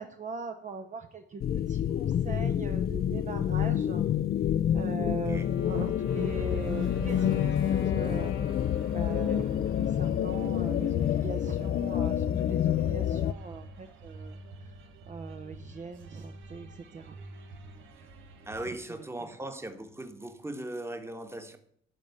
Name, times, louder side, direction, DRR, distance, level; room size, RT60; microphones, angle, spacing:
voice 1, 0.0-4.0 4.7-8.4 8.9-14.4 15.1-17.2, right 4 dB, 40° right, 0.8 m, -40 dB
sound 1, 1.4-13.3, left 10 dB, 50° left, 0.5 m, -28 dB
voice 2, 5.1-5.5 18.5-21.6, right 1 dB, 10° right, 1.3 m, -39 dB
Wind instrument woodwind instrument, 5.3-10.3, left 6 dB, 80° left, 1.3 m, -44 dB
sound 2, 6.1-18.7, right 3 dB, 80° right, 1.4 m, -47 dB
12.0 x 4.2 x 8.2 m
cardioid pair, 90°, 20 cm